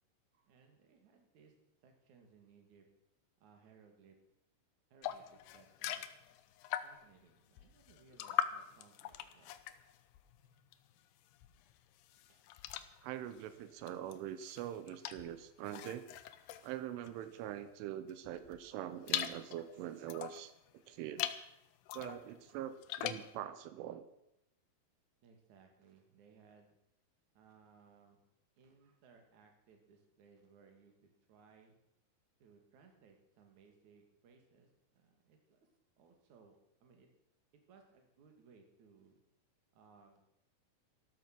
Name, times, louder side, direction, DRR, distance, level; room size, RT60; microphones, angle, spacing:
voice 1, 0.3-1.5 1.8-2.9 3.4-4.2 4.9-6.0 6.8-9.5 10.4-10.5 12.3-12.4 25.2-26.7 27.3-28.2 28.6-31.8 32.4-35.7 36.0-37.1 37.7-39.2 39.7-40.2, right 5 dB, 45° right, 4 dB, 3.1 m, -64 dB
sound 1, 5.0-7.2 7.6-11.0 11.3-17.6 18.1-20.5 21.0-21.5 21.9-23.3, left 12 dB, 80° left, 2.5 m, -42 dB
voice 2, 13.0-16.2 16.6-20.5 20.9-21.3 21.9-24.1, right 11 dB, 90° right, 12 dB, 3.4 m, -43 dB
14.0 x 13.0 x 6.2 m, 0.81 s
omnidirectional pair, 5.5 m